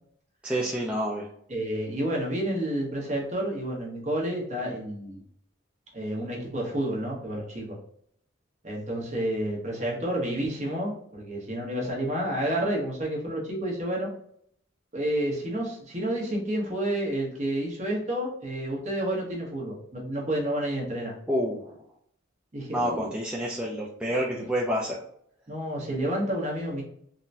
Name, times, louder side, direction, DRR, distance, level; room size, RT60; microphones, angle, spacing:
voice 1, 0.4-1.3 21.3-21.6 22.7-25.0, equal, 5° right, -4 dB, 0.3 m, -28 dB
voice 2, 1.5-5.2 5.9-7.8 8.6-14.1 14.9-21.1 22.5-23.1 24.3-24.5 25.5-26.8, right 1 dB, 35° right, -2 dB, 1.0 m, -30 dB
3.7 x 2.1 x 2.6 m, 0.67 s
head